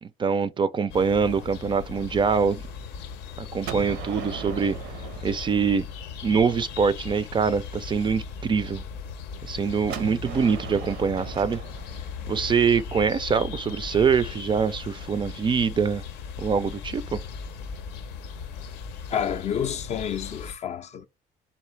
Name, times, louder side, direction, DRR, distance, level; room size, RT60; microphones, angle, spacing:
voice 1, 0.0-2.6 3.4-4.8 5.2-5.8 6.2-8.8 9.4-11.6 12.3-16.0 16.4-17.2, right 6 dB, 30° right, 0.3 m, -24 dB
sound 1, 0.9-20.5, left 6 dB, 90° left, 0.6 m, -38 dB
Gunshot gunfire, 3.6-6.5 9.9-13.7, right 9 dB, 80° right, 0.7 m, -39 dB
voice 2, 19.1-21.1, left 8 dB, 40° left, 0.4 m, -29 dB
4.0 x 2.7 x 3.2 m
cardioid pair, 110°, 17 cm